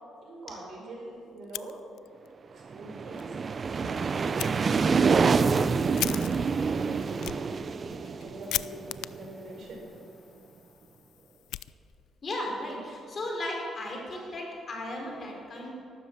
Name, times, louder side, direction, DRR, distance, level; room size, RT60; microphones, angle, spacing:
voice 1, 0.2-1.8 2.5-3.3 3.7-6.2 6.7-9.8, right 1 dB, 60° right, 0 dB, 4.8 m, -44 dB
Fire, 1.4-2.3 2.6-2.7 3.1-3.2 4.4-4.5 5.1-12.2, left 14 dB, 90° left, 0.3 m, -39 dB
sound 1, 2.7-9.4, right 5 dB, 40° right, 0.6 m, -27 dB
voice 2, 12.2-15.7, left 1 dB, 45° left, 0 dB, 4.5 m, -35 dB
14.0 x 12.5 x 7.5 m, 2.5 s
cardioid pair, 90°, 0 cm